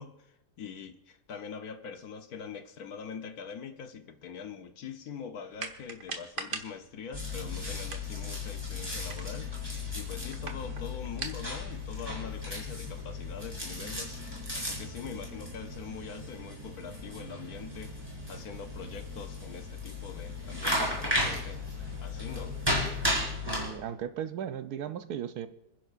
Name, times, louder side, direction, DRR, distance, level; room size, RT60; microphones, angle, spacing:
voice 1, 0.0-9.5 9.9-14.2 14.5-17.9 18.3-21.6 22.0-22.6, left 6 dB, 65° left, 7 dB, 1.3 m, -43 dB
sound 1, 5.5-12.9, right 4 dB, 50° right, 1.5 m, -45 dB
sound 2, 7.1-23.7, left 2 dB, 15° right, 4.7 m, -35 dB
voice 2, 23.4-25.5, right 9 dB, 70° right, 10 dB, 1.2 m, -36 dB
27.0 x 10.5 x 2.5 m, 0.85 s
omnidirectional pair, 1.8 m